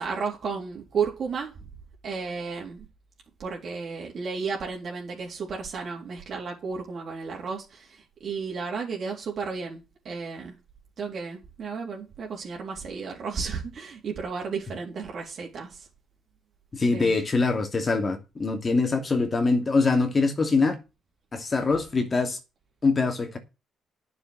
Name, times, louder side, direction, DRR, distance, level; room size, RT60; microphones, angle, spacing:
voice 1, 0.0-1.5 2.0-2.9 3.4-10.5 11.0-15.9 16.9-17.2, right 5 dB, 55° right, 3.7 m, -33 dB
voice 2, 16.7-20.8 21.3-22.4 22.8-23.4, left 3 dB, 30° left, 2.7 m, -23 dB
9.6 x 6.9 x 7.8 m
cardioid pair, 90°, 0 cm